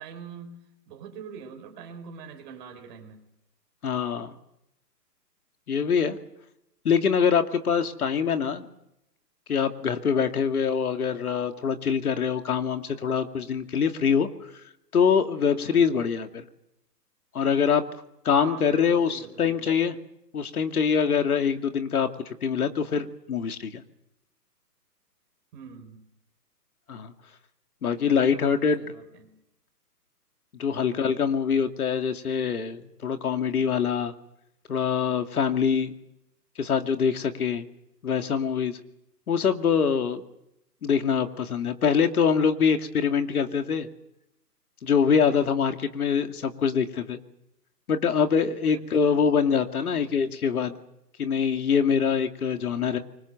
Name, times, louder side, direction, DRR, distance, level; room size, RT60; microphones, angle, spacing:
voice 1, 0.0-3.2 15.6-15.9 18.3-19.7 25.5-26.0 28.0-29.3 30.8-31.0 45.2-45.4 48.7-49.3 49.8-50.1, right 7 dB, 25° right, 4 dB, 4.9 m, -44 dB
voice 2, 3.8-4.3 5.7-6.2 6.8-8.7 9.5-14.3 14.9-16.4 17.3-17.8 18.2-20.0 20.3-23.8 26.9-27.1 27.8-28.8 30.6-34.1 34.7-35.9 36.6-37.6 38.0-38.8 39.3-40.2 40.8-43.9 44.8-47.2 47.9-50.8 51.2-53.0, left 6 dB, 60° left, 7 dB, 2.5 m, -24 dB
28.0 x 24.5 x 6.7 m, 0.83 s
hypercardioid pair, 160°, 49 cm